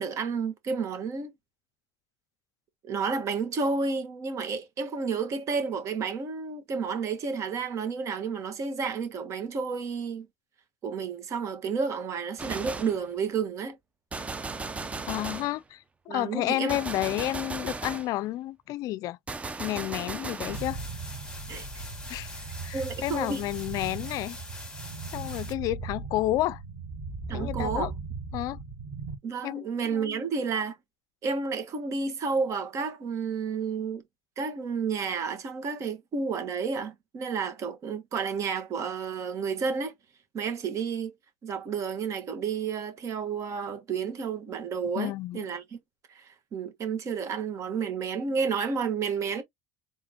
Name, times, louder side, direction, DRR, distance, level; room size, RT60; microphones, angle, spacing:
voice 1, 0.0-1.3 2.9-10.3 10.8-13.8 16.1-16.8 21.5-21.7 22.7-23.4 27.3-27.9 29.2-30.8 31.2-34.0 34.4-39.9 40.3-41.1 41.4-45.6 46.1-49.4, right 5 dB, 50° right, 1.5 m, -31 dB
Gunshot gunfire, 12.4-13.0 14.1-15.6 16.7-18.1 19.3-20.7, right 3 dB, 20° right, 0.7 m, -36 dB
voice 2, 15.1-19.2 19.6-20.8 22.1-22.3 22.6-24.4 25.1-26.6 27.3-27.9 28.3-28.6 29.4-30.2 45.0-45.5, left 16 dB, 60° left, 0.4 m, -31 dB
sound 1, 20.5-25.5, left 2 dB, 10° left, 2.2 m, -43 dB
sound 2, 20.5-29.2, right 4 dB, 75° right, 2.5 m, -38 dB
4.8 x 3.7 x 2.9 m
supercardioid pair, 90°, 7 cm